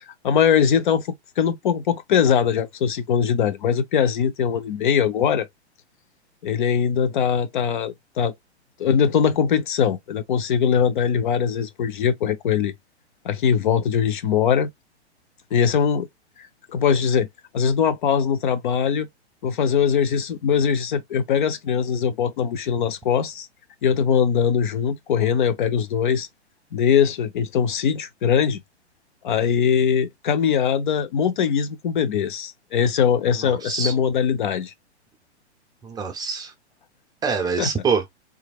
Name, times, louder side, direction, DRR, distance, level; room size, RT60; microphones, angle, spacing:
voice 1, 0.0-5.5 6.4-8.3 8.8-12.7 13.2-14.7 15.5-16.1 16.4-17.3 17.5-19.1 19.4-23.5 23.8-26.3 26.7-28.6 29.2-34.7 37.6-37.7, left 7 dB, 45° left, 0.5 m, -21 dB
voice 2, 33.4-33.9 35.8-36.5 37.2-38.0, right 5 dB, 10° right, 0.7 m, -25 dB
3.4 x 3.1 x 2.3 m
figure-of-eight pair, 110°, 34 cm